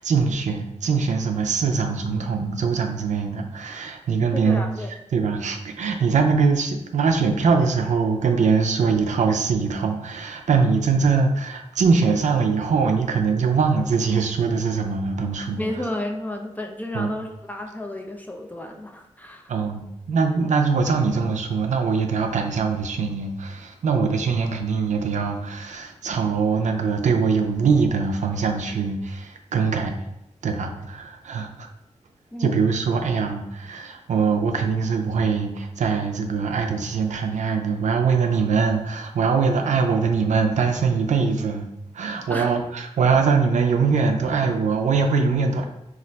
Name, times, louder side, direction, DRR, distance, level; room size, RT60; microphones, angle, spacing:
voice 1, 0.0-4.7 5.1-15.6 16.9-17.1 19.5-30.0 30.4-31.7 32.4-41.7 41.9-45.6, right 5 dB, 80° right, 4 dB, 0.4 m, -22 dB
voice 2, 4.3-4.9 15.6-19.4 32.3-32.6 42.3-42.5, left 1 dB, 15° left, 2 dB, 0.3 m, -32 dB
2.4 x 2.1 x 3.9 m, 0.85 s
wide cardioid pair, 75°, 12 cm